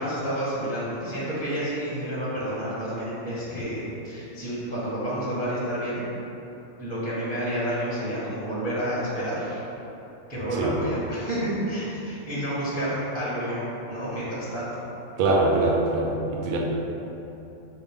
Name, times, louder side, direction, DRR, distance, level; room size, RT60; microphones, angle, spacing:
voice 1, 0.0-6.1 6.8-9.6 10.3-14.7, equal, 10° right, -9 dB, 0.9 m, -30 dB
voice 2, 15.2-16.6, right 2 dB, 85° right, -1 dB, 1.0 m, -23 dB
4.7 x 2.5 x 3.5 m, 3.0 s
omnidirectional pair, 1.4 m